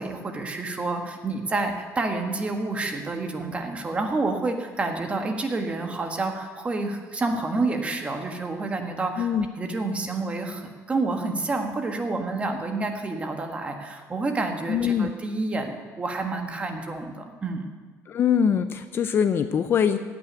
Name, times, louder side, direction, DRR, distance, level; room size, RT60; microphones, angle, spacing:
voice 1, 0.0-9.3 9.6-17.7, right 3 dB, 20° right, 4 dB, 1.5 m, -29 dB
voice 2, 14.7-15.1 18.1-20.0, left 7 dB, 40° left, 10 dB, 0.5 m, -23 dB
16.5 x 6.1 x 9.9 m, 1.5 s
cardioid pair, 150°, 6 cm